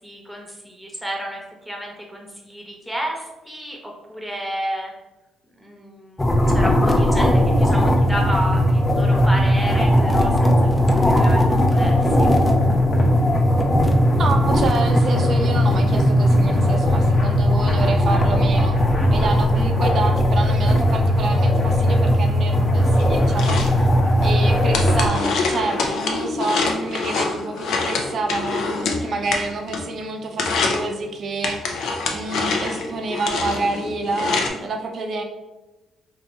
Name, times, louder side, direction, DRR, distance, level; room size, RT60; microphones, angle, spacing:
voice 1, 0.0-4.9 5.5-12.3 29.0-29.3, equal, ahead, 0 dB, 0.9 m, -32 dB
sound 1, 6.2-25.1, equal, 15° left, 0.5 m, -18 dB
sound 2, 8.8-25.9, left 2 dB, 50° left, 0.9 m, -35 dB
voice 2, 14.2-18.8 19.1-23.6 24.2-28.7 29.0-31.6 32.1-35.2, right 3 dB, 55° right, 4 dB, 0.6 m, -28 dB
sound 3, 23.0-30.0 30.3-30.9 31.4-34.5, left 4 dB, 80° left, 0.6 m, -26 dB
2.8 x 2.6 x 4.3 m, 1.1 s
cardioid pair, 90°, 0 cm